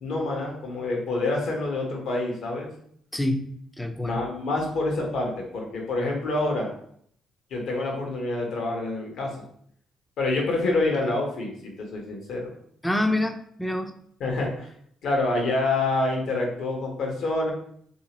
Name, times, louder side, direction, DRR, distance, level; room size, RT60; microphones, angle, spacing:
voice 1, 0.0-2.7 4.0-6.8 7.5-9.3 10.2-12.5 14.2-14.7 15.0-17.5, left 2 dB, 75° left, 0 dB, 1.0 m, -27 dB
voice 2, 3.1-4.2 12.8-13.9, left 1 dB, 10° left, 6 dB, 0.4 m, -27 dB
3.2 x 2.7 x 2.9 m, 0.65 s
cardioid pair, 90°, 0 cm